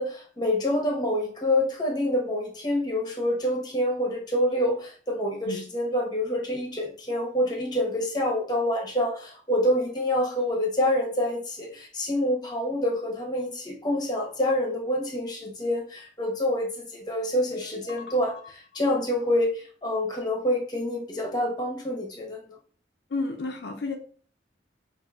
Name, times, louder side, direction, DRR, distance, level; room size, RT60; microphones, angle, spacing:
voice 1, 0.0-22.4, left 1 dB, 25° left, 1 dB, 0.9 m, -27 dB
voice 2, 17.5-18.3 23.1-24.0, left 3 dB, 65° left, 3 dB, 0.5 m, -33 dB
5.4 x 2.5 x 2.4 m, 0.43 s
head